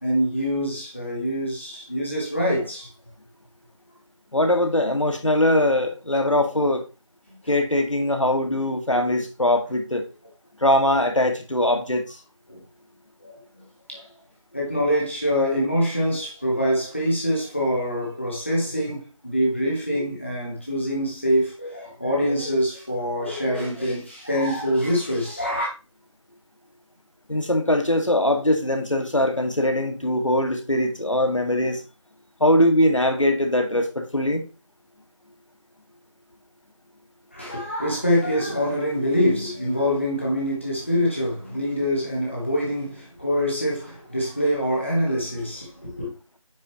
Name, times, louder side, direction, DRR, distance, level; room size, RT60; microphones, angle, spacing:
voice 1, 0.0-2.9 9.0-9.1 12.5-12.6 13.2-13.3 13.9-14.1 14.5-25.7 37.3-46.1, equal, 20° left, 1.5 m, -25 dB
voice 2, 4.3-6.8 7.5-10.0 10.6-12.2 27.3-31.8 32.4-34.4, left 1 dB, 70° left, 2.1 m, -21 dB
9.0 x 5.3 x 3.1 m
figure-of-eight pair, 175°, 17 cm